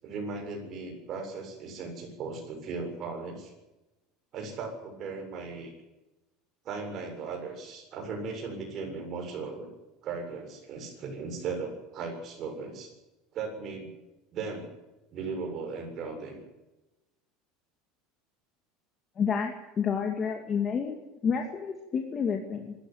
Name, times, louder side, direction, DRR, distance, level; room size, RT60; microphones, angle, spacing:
voice 1, 0.0-3.5 4.3-5.7 6.6-9.7 10.0-12.9 13.3-13.9 14.3-14.7 15.1-16.4, right 4 dB, 40° right, 4 dB, 7.3 m, -37 dB
voice 2, 19.2-21.0 21.2-22.7, left 6 dB, 25° left, 2 dB, 2.4 m, -29 dB
25.0 x 14.0 x 9.4 m, 1.0 s
cardioid pair, 155°, 0 cm